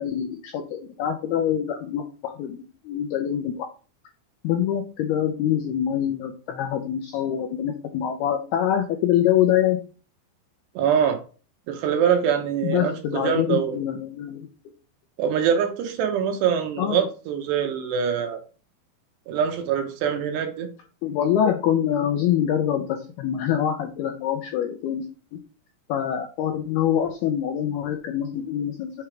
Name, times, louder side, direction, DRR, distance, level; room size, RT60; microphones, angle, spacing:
voice 1, 0.0-3.7 4.4-9.8 12.6-14.5 16.8-17.1 21.0-25.0 25.9-29.1, left 10 dB, 80° left, 4 dB, 2.2 m, -25 dB
voice 2, 10.8-11.2 11.7-13.8 15.2-18.4 19.3-20.7, right 8 dB, 75° right, 5 dB, 2.7 m, -24 dB
7.4 x 4.7 x 4.9 m, 0.37 s
omnidirectional pair, 5.5 m